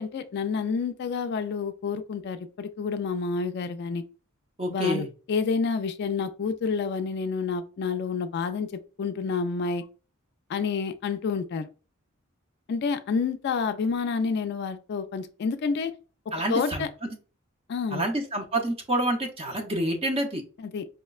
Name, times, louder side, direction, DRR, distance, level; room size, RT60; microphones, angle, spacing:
voice 1, 0.0-4.0 4.7-8.7 9.0-9.8 10.5-11.7 12.7-15.9 16.5-16.9 17.7-18.1 20.6-20.9, left 5 dB, 50° left, 8 dB, 0.3 m, -29 dB
voice 2, 4.6-5.1 16.3-17.2 17.9-20.4, right 1 dB, 30° right, 2 dB, 0.7 m, -28 dB
4.8 x 2.1 x 2.3 m, 0.36 s
head